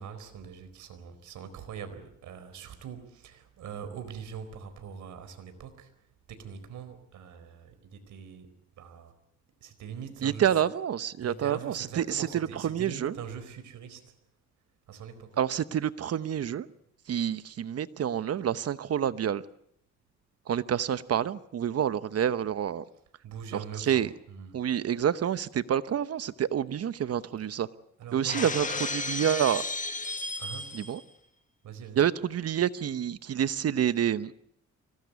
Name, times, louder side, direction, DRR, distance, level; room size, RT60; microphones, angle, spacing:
voice 1, 0.0-5.9 6.3-9.1 9.6-10.6 11.2-14.2 14.9-15.4 23.2-24.6 27.4-27.5 28.0-28.8 30.4-30.8 31.6-32.0, right 7 dB, 75° right, 4.4 m, -43 dB
voice 2, 10.2-13.1 15.4-16.7 17.1-19.4 20.5-22.8 23.9-24.1 24.5-27.7 28.1-28.7 28.9-29.6 30.7-31.0 32.0-34.3, right 9 dB, 55° right, 1.0 m, -28 dB
Shatter, 28.3-31.0, left 3 dB, 25° left, 1.8 m, -33 dB
24.5 x 19.0 x 8.3 m
cardioid pair, 90°, 30 cm